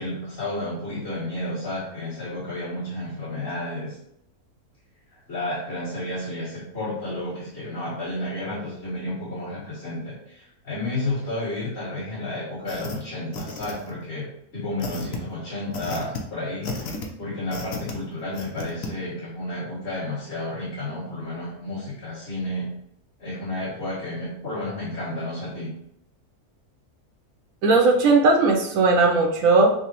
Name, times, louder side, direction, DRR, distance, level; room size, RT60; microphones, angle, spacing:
voice 1, 0.0-4.0 5.3-22.7 23.2-25.7, left 1 dB, 45° left, -10 dB, 2.0 m, -31 dB
sound 1, 12.7-13.0 13.3-14.0 14.8-15.2 15.7-16.2 16.6-17.1 17.5-17.9 18.3-18.9, left 4 dB, 70° left, 1.1 m, -33 dB
voice 2, 27.6-29.7, right 3 dB, 70° right, 2 dB, 0.9 m, -18 dB
5.9 x 2.1 x 2.9 m, 0.74 s
omnidirectional pair, 1.6 m